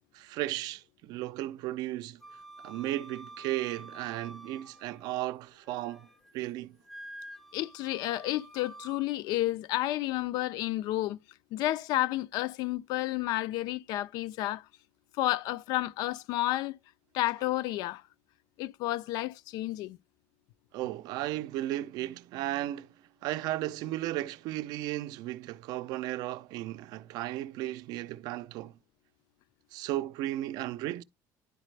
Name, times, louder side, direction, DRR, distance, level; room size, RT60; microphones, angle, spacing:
voice 1, 0.1-2.2 2.6-6.1 6.3-6.8 20.7-22.9 23.2-28.7 29.7-31.0, right 15 dB, 70° right, 0.4 m, -35 dB
Wind instrument woodwind instrument, 2.2-5.2 5.6-6.3 6.8-9.0, right 2 dB, 5° left, 0.5 m, -49 dB
voice 2, 7.5-11.2 11.5-14.7 15.1-16.8 17.1-18.0 18.6-20.0, left 16 dB, 70° left, 0.4 m, -31 dB
10.5 x 4.1 x 3.2 m
cardioid pair, 150°, 7 cm